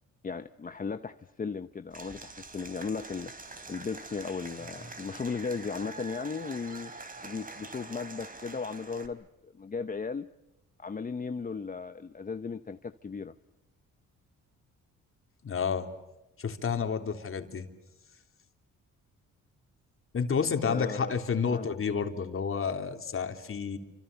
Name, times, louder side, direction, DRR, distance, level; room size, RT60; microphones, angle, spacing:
voice 1, 0.2-3.3 3.7-6.9 7.2-10.3 10.8-13.3 20.6-21.2 21.5-21.7, left 5 dB, 30° left, 0.9 m, -36 dB
Applause / Crowd, 1.9-9.1, right 3 dB, 30° right, 4.4 m, -45 dB
voice 2, 15.4-15.9 16.4-17.7 20.1-23.8, left 6 dB, 45° left, 3.4 m, -30 dB
29.5 x 26.0 x 6.9 m
cardioid pair, 90°, 30 cm